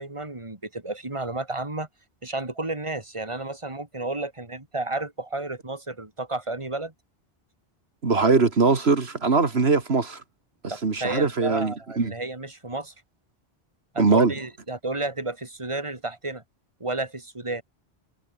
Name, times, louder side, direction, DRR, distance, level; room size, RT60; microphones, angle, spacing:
voice 1, 0.0-1.9 2.2-6.9 10.7-12.9 13.9-16.4 16.8-17.6, right 2 dB, 30° right, 2.9 m, -32 dB
voice 2, 8.0-10.2 10.8-12.1 14.0-14.3, right 4 dB, 80° right, 2.4 m, -21 dB
omnidirectional pair, 1.1 m